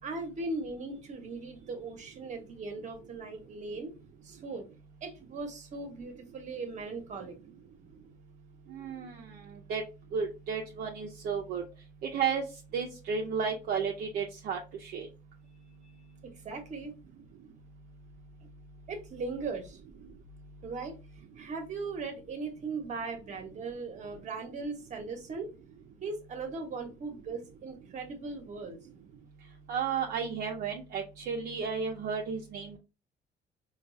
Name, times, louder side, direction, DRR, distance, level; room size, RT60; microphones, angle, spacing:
voice 1, 0.0-4.0 4.2-4.7 5.0-7.4 16.2-16.9 18.9-19.8 20.6-20.9 21.4-25.5 26.0-28.8, right 3 dB, 45° right, 5 dB, 1.0 m, -38 dB
voice 2, 8.7-9.8 10.1-11.6 12.0-12.4 12.7-15.1 29.7-32.8, right 6 dB, 60° right, 1 dB, 0.6 m, -33 dB
4.4 x 2.3 x 2.6 m, 0.30 s
cardioid pair, 110°, 17 cm